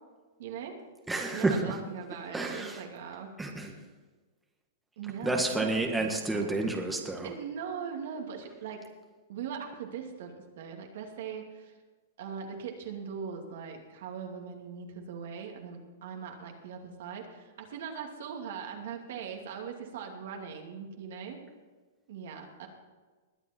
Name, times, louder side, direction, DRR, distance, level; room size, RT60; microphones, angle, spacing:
voice 1, 0.4-0.8 1.3-3.3 5.0-6.6 7.2-8.9 9.3-11.7 12.2-21.4 22.1-22.7, right 7 dB, 65° right, 2 dB, 2.5 m, -40 dB
voice 2, 1.1-1.8 2.3-2.8 3.4-3.7 5.2-7.3, right 2 dB, 5° right, 1 dB, 1.7 m, -30 dB
21.0 x 8.4 x 4.5 m, 1.4 s
hypercardioid pair, 125°, 0 cm